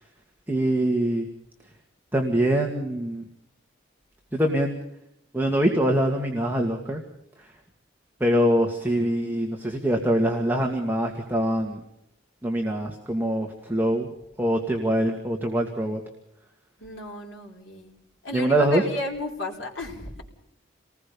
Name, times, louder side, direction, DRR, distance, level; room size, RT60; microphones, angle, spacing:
voice 1, 0.5-1.3 2.1-3.2 4.3-4.8 5.3-7.0 7.4-7.5 8.2-11.8 12.4-14.1 14.4-16.0 18.3-18.8, right 1 dB, 10° right, 1 dB, 2.1 m, -24 dB
voice 2, 16.8-17.9 18.2-20.2, left 2 dB, 65° left, 0 dB, 5.0 m, -34 dB
28.5 x 20.0 x 5.4 m, 0.75 s
head